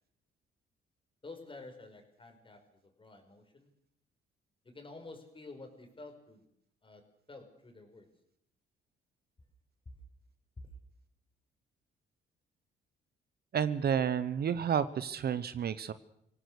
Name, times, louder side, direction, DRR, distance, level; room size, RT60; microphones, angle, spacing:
voice 1, 1.2-3.7 4.6-6.5 6.8-7.0 7.3-8.1, left 3 dB, 25° left, 5 dB, 5.3 m, -50 dB
voice 2, 13.5-15.9, right 8 dB, 55° right, 14 dB, 1.0 m, -30 dB
25.5 x 17.5 x 6.6 m, 0.75 s
cardioid pair, 90°, 20 cm